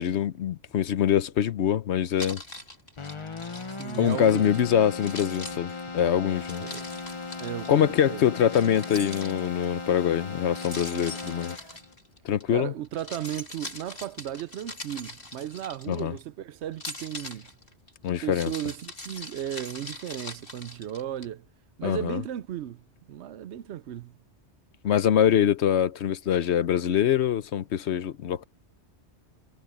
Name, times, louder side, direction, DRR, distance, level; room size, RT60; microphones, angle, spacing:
voice 1, 0.0-2.4 4.0-6.6 7.7-11.5 12.2-12.7 15.9-16.1 18.0-18.5 21.8-22.2 24.8-28.5, left 9 dB, 75° left, 1.0 m, -24 dB
Keys jangling, 2.2-4.6 5.0-7.7 8.5-9.7 10.6-12.4 12.8-16.2 16.7-21.3, left 2 dB, 50° left, 3.5 m, -42 dB
Keyboard (musical), 3.0-11.9, left 4 dB, 30° left, 0.8 m, -38 dB
voice 2, 3.7-4.6 6.6-6.9 7.4-8.2 12.5-17.5 18.2-21.5 21.8-24.1, right 11 dB, 75° right, 0.9 m, -35 dB
sound 1, 6.3-11.8, equal, 20° right, 5.8 m, -52 dB
omnidirectional pair, 1.2 m